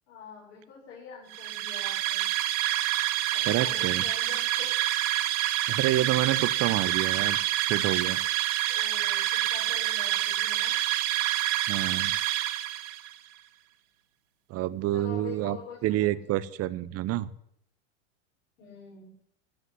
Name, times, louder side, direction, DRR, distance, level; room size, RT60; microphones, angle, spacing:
voice 1, 0.1-2.3 3.3-4.8 8.7-10.8 14.9-16.5 18.6-19.1, left 6 dB, 65° left, -6 dB, 6.4 m, -45 dB
sound 1, 1.3-13.1, right 14 dB, 65° right, 1.3 m, -27 dB
voice 2, 3.5-4.0 5.7-7.4 7.7-8.2 11.7-12.1 14.5-15.6 15.8-17.3, right 14 dB, 40° right, 17 dB, 0.8 m, -28 dB
15.5 x 5.8 x 9.7 m, 0.73 s
hypercardioid pair, 105°, 38 cm